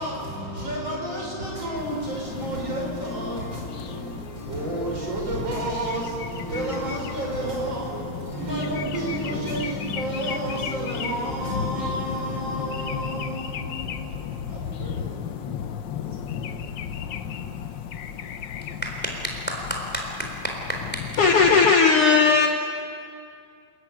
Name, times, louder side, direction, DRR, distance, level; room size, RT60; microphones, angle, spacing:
voice 1, 0.0-15.5, right 1 dB, 40° right, 5.8 m, -31 dB
sound 1, 1.8-21.7, left 8 dB, 85° left, 1.0 m, -35 dB
voice 2, 19.2-21.0, right 1 dB, 5° left, 3.5 m, -31 dB
voice 3, 21.2-22.5, left 5 dB, 60° left, 1.8 m, -16 dB
30.0 x 13.5 x 9.4 m
omnidirectional pair, 3.3 m